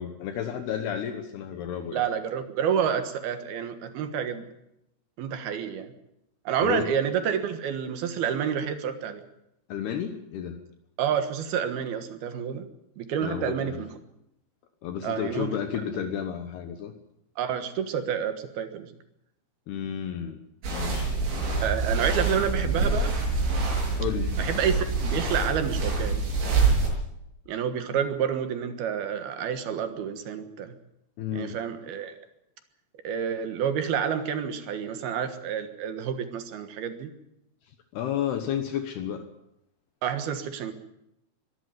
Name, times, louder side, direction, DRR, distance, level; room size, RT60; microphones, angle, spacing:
voice 1, 0.0-2.1 6.6-6.9 9.7-10.6 13.2-13.8 14.8-16.9 19.7-20.4 20.7-21.2 24.0-24.4 31.2-31.6 37.9-39.3, left 9 dB, 70° left, 7 dB, 3.0 m, -32 dB
voice 2, 1.9-4.4 5.2-5.9 6.5-9.2 11.0-12.7 13.0-13.9 15.0-15.5 17.4-18.9 21.6-23.1 24.4-26.2 27.5-30.7 31.3-32.2 33.0-37.1 40.0-40.7, right 8 dB, 65° right, 9 dB, 3.0 m, -29 dB
sound 1, 20.6-26.9, right 3 dB, 80° right, 9.4 m, -26 dB
23.0 x 13.0 x 9.5 m, 0.82 s
omnidirectional pair, 5.2 m